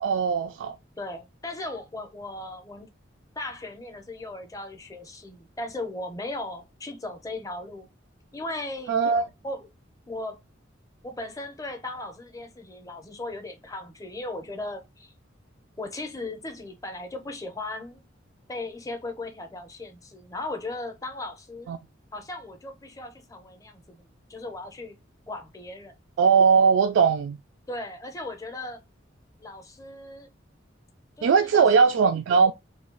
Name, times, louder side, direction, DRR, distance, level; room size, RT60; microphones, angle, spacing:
voice 1, 0.0-0.8 8.9-9.3 21.7-21.8 26.2-27.4 31.2-32.5, right 5 dB, 75° right, 0.3 m, -20 dB
voice 2, 1.0-2.9 3.4-7.9 8.3-8.9 9.4-9.7 10.1-10.4 11.0-15.1 15.8-18.0 18.5-21.7 22.1-25.0 25.3-25.9 27.7-28.8 29.4-30.3 31.2-31.7, left 2 dB, 20° left, 0.6 m, -37 dB
3.1 x 2.2 x 3.7 m
head